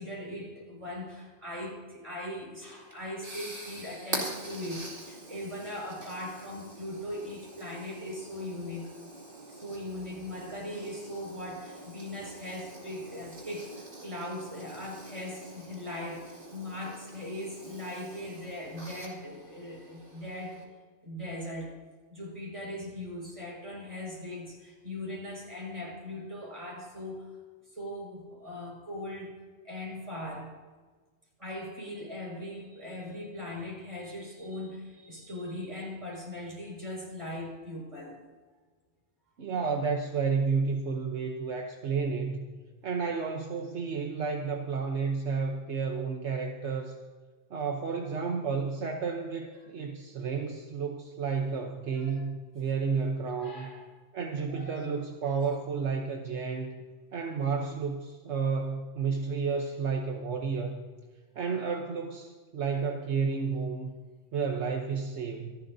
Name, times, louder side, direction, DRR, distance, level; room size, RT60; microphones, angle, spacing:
voice 1, 0.0-8.9 9.5-20.6 21.0-21.7 22.1-27.3 27.7-29.3 29.6-30.5 31.4-38.2 51.9-52.3 53.4-53.8 54.5-54.8 61.3-61.7, left 1 dB, 25° right, -3 dB, 5.7 m, -39 dB
sound 1, 2.6-20.6, right 2 dB, 45° right, 2.8 m, -45 dB
voice 2, 39.4-42.4 42.8-47.0 47.5-53.7 54.1-56.8 57.1-60.8 61.4-63.9 64.3-65.6, right 5 dB, 70° right, 3 dB, 1.2 m, -31 dB
26.5 x 11.5 x 2.7 m, 1.4 s
omnidirectional pair, 1.2 m